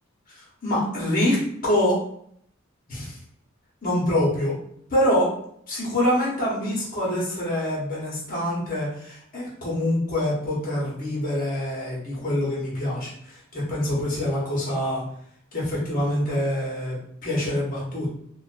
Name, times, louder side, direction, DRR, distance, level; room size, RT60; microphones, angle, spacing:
voice 1, 0.3-1.4 1.6-2.0 2.9-3.2 3.8-4.6 4.9-5.3 5.7-15.0 15.5-18.1, left 1 dB, 45° left, -5 dB, 0.9 m, -25 dB
2.5 x 2.2 x 2.4 m, 0.67 s
head